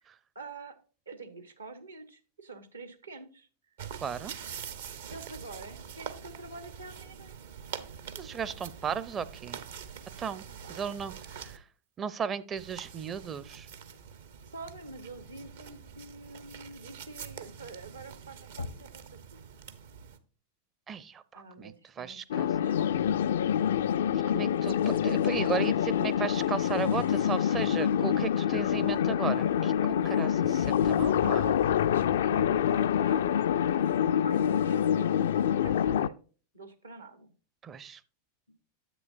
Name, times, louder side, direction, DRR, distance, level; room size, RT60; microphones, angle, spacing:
voice 1, 0.3-0.8 1.1-3.5 5.1-7.3 10.5-11.4 14.5-19.4 21.3-22.9 31.2-35.1 35.5-36.1 36.5-37.3, right 3 dB, 75° right, 8 dB, 1.3 m, -46 dB
sound 1, 3.8-11.6 12.6-20.2, right 7 dB, 60° right, 0.8 m, -45 dB
voice 2, 4.0-4.3 8.2-9.6 10.2-10.4 10.7-11.6 12.0-13.7 20.9-22.5 24.1-31.5 37.6-38.0, right 7 dB, 25° right, 16 dB, 0.5 m, -35 dB
Knock, 18.6-19.5, left 4 dB, 80° left, 0.7 m, -42 dB
sound 2, 22.3-36.1, left 9 dB, 60° left, 0.3 m, -26 dB
9.9 x 8.0 x 2.6 m, 0.37 s
figure-of-eight pair, 90°, 0 cm